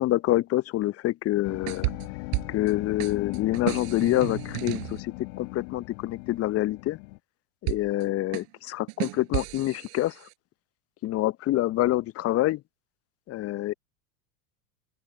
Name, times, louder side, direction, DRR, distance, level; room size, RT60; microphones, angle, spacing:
voice 1, 0.0-1.9 2.5-7.0 7.6-10.3 11.0-12.6 13.3-13.7, left 15 dB, 30° left, 0.8 m, -26 dB
sound 1, 1.4-7.2, left 33 dB, 55° left, 5.4 m, -38 dB
sound 2, 1.5-2.7 3.0-5.0 7.7-8.0 8.3-10.3, right 40 dB or more, 55° right, 7.0 m, -33 dB
open air
figure-of-eight pair, 85°, 48 cm